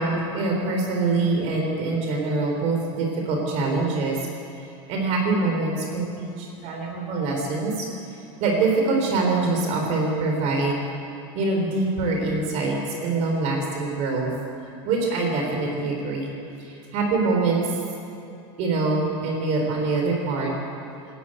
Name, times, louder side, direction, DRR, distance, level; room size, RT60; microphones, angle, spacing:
voice 1, 0.0-4.3 4.6-7.9 8.4-10.8 11.3-14.3 14.8-16.3 16.6-17.7 18.6-20.5, right 3 dB, 45° right, 2 dB, 4.2 m, -24 dB
20.0 x 14.5 x 9.1 m, 2.7 s
supercardioid pair, 140°, 15 cm